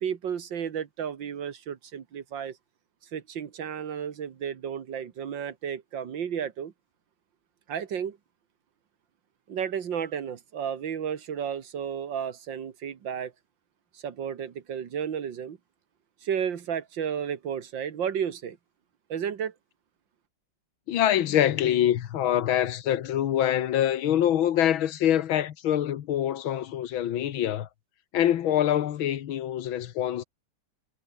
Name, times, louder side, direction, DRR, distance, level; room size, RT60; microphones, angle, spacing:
voice 1, 0.0-2.6 3.1-6.7 7.7-8.2 9.5-13.3 13.9-15.6 16.2-18.6 19.1-19.5, right 8 dB, 65° right, 2.2 m, -32 dB
voice 2, 20.9-27.7 28.1-30.2, left 11 dB, 75° left, 1.9 m, -25 dB
omnidirectional pair, 2.2 m